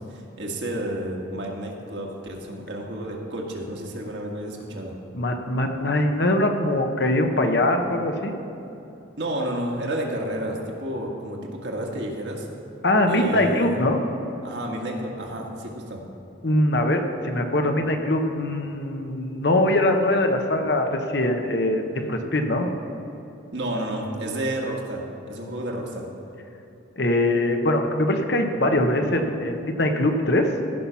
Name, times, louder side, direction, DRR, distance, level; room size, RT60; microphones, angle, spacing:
voice 1, 0.0-4.9 9.2-12.5 13.0-13.8 14.4-16.0 23.5-25.0 25.3-26.0, right 1 dB, 65° right, -1 dB, 1.7 m, -31 dB
voice 2, 5.1-8.3 12.8-14.0 16.4-22.7 27.0-30.5, left 1 dB, 60° left, 4 dB, 1.0 m, -22 dB
15.5 x 5.8 x 5.7 m, 2.9 s
head